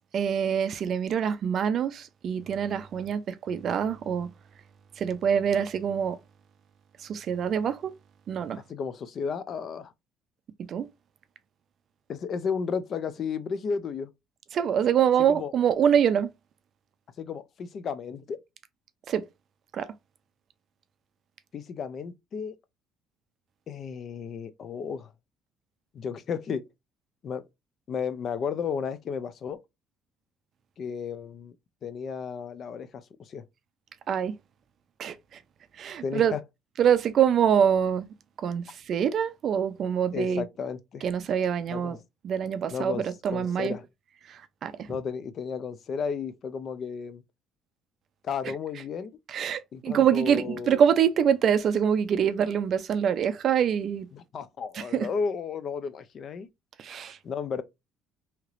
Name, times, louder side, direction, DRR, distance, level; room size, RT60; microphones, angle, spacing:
voice 1, 0.1-4.3 5.0-6.2 7.0-7.9 8.3-8.6 10.7-10.9 14.5-16.3 19.1-19.3 19.7-19.9 34.1-34.3 35.0-35.4 35.8-36.3 36.8-38.1 38.4-40.4 41.0-42.0 42.2-43.7 44.3-44.9 49.3-54.1 54.7-55.1 56.8-57.2, right 8 dB, 50° right, 0.4 m, -25 dB
voice 2, 8.7-9.9 12.1-14.1 15.3-15.5 17.2-18.4 21.5-22.6 23.7-25.1 25.9-26.7 27.2-27.5 27.9-29.6 30.8-31.6 31.8-33.4 36.0-36.4 40.1-41.1 41.7-42.0 42.7-43.8 44.9-47.2 48.2-49.1 49.7-50.8 54.1-56.5 57.2-57.6, left 6 dB, 45° left, 0.5 m, -33 dB
3.2 x 2.8 x 2.5 m
cardioid pair, 125°, 0 cm